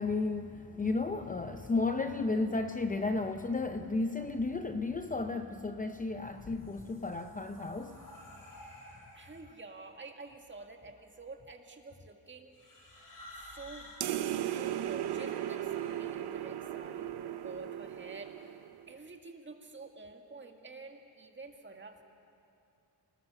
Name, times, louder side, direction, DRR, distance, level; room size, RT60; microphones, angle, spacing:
voice 1, 0.0-8.1, left 3 dB, 20° left, 7 dB, 0.7 m, -33 dB
sound 1, 6.3-9.6 10.5-10.9 12.5-16.1, left 1 dB, 55° left, 5.9 m, -53 dB
voice 2, 9.1-12.5 13.3-18.6 18.9-22.0, right 3 dB, 30° right, 4 dB, 1.9 m, -49 dB
sound 2, 14.0-18.9, right 11 dB, 85° right, 0.8 m, -36 dB
26.5 x 19.5 x 7.0 m, 2.7 s
wide cardioid pair, 125°, 38 cm